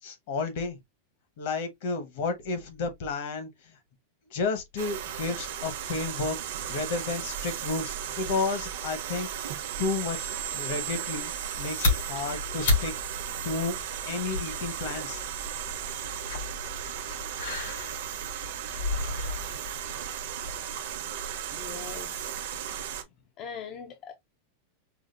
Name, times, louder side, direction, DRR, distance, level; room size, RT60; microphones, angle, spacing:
voice 1, 0.0-0.8 1.4-3.5 4.3-6.4 6.7-9.3 9.8-11.3 11.6-12.9 13.4-13.7 14.1-15.2, left 4 dB, 50° left, 1.0 m, -32 dB
sound 1, 4.8-23.0, right 9 dB, 60° right, 0.8 m, -35 dB
sound 2, 11.4-20.6, left 3 dB, 90° left, 2.8 m, -33 dB
voice 2, 21.5-22.4 23.4-24.1, left 6 dB, 25° left, 0.4 m, -41 dB
4.9 x 2.4 x 2.5 m
supercardioid pair, 175°, 0 cm